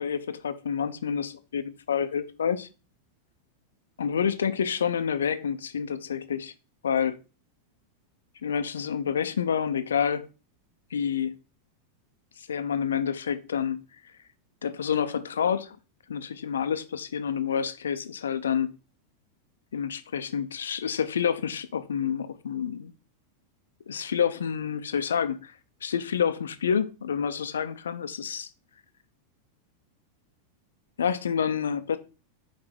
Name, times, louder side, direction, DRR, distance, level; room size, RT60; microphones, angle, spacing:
voice 1, 0.0-2.7 4.0-6.5 6.8-7.2 8.4-10.3 10.9-11.3 12.4-13.8 14.6-15.8 16.1-18.7 19.7-22.9 23.9-25.5 25.8-28.5 31.0-32.0, left 7 dB, 65° left, 0.6 m, -28 dB
5.6 x 4.8 x 4.4 m
figure-of-eight pair, 90°, 0 cm